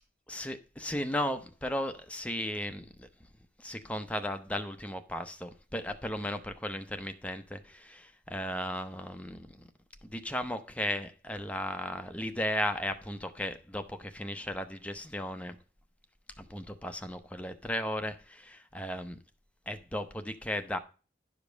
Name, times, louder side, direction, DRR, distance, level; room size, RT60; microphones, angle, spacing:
voice 1, 0.3-3.1 3.6-9.7 10.0-15.6 16.4-19.2 19.7-20.8, left 1 dB, 10° left, 0.7 m, -35 dB
11.0 x 5.2 x 5.1 m
head